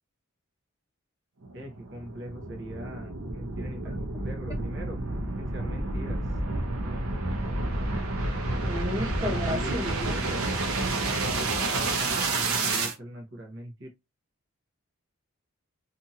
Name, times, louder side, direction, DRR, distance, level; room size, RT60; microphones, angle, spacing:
sound 1, 1.4-12.9, right 2 dB, 80° right, 0.7 m, -30 dB
voice 1, 1.5-5.0 5.4-6.2 9.1-9.8 11.0-13.9, right 1 dB, 60° right, 0.9 m, -41 dB
voice 2, 8.6-10.5, left 1 dB, 15° right, 1.0 m, -33 dB
2.7 x 2.5 x 2.8 m
head